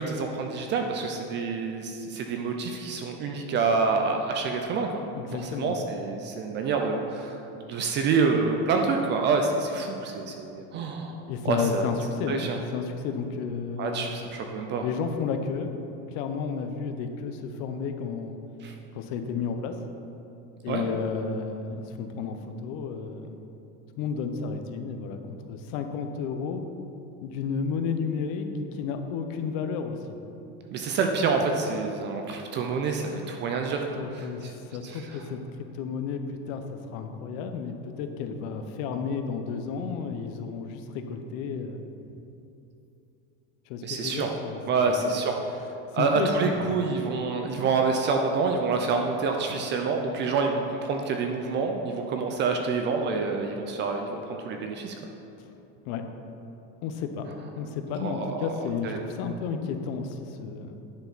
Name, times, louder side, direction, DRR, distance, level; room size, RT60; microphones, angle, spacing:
voice 1, 0.0-5.0 5.3-11.9 12.3-12.6 13.8-14.8 18.6-18.7 20.7-20.8 30.7-34.5 34.8-35.1 43.8-44.3 44.7-45.6 45.9-54.9 58.0-58.5 58.8-59.0, right 4 dB, 30° right, 3 dB, 0.4 m, -27 dB
voice 2, 5.1-5.8 11.3-12.4 12.7-14.1 14.8-15.7 16.1-18.4 18.9-19.8 20.6-23.4 24.0-26.7 27.2-28.5 28.7-30.2 33.9-41.8 43.7-45.0 45.9-46.9 55.4-55.5 55.9-56.0 56.8-57.3 57.6-60.8, left 5 dB, 60° left, 6 dB, 0.8 m, -32 dB
9.7 x 6.3 x 4.0 m, 2.8 s
cardioid pair, 165°, 38 cm